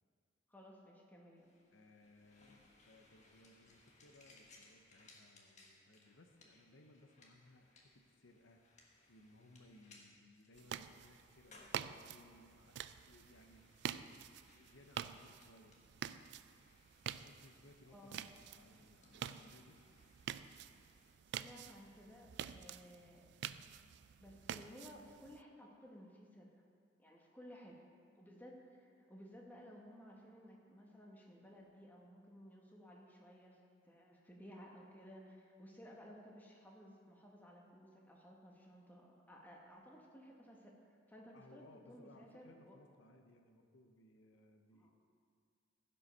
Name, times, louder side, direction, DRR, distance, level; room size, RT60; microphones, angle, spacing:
voice 1, 0.5-1.4 17.9-18.2 21.3-23.3 24.2-26.5 27.0-27.8 28.2-33.6 33.8-42.8 44.7-44.9, equal, 10° left, -2 dB, 1.3 m, -57 dB
sound 1, 1.4-21.1, left 2 dB, 40° left, 1.4 m, -67 dB
voice 2, 1.7-12.8 13.1-16.3 17.1-19.8 41.3-44.9, left 1 dB, 75° left, 5 dB, 0.8 m, -64 dB
sound 2, 10.5-25.4, right 9 dB, 60° right, 0.3 m, -48 dB
15.5 x 5.4 x 5.4 m, 2.3 s
head